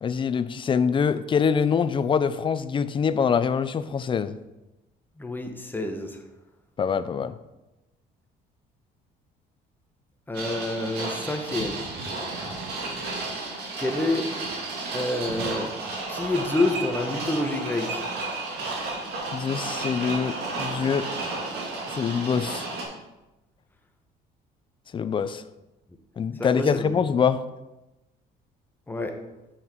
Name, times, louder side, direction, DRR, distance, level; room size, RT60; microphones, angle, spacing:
voice 1, 0.0-4.4 6.8-7.3 19.3-21.1 21.9-22.7 24.9-25.4 26.2-27.4, left 6 dB, 30° left, 13 dB, 0.5 m, -24 dB
voice 2, 5.2-6.2 10.3-11.8 13.8-14.3 14.9-15.7 16.1-18.1 26.4-26.9 28.9-29.1, left 2 dB, 10° left, 4 dB, 1.1 m, -28 dB
sound 1, 10.3-22.8, right 3 dB, 75° right, 2.2 m, -32 dB
7.4 x 6.5 x 4.5 m, 1.0 s
cardioid pair, 110°, 17 cm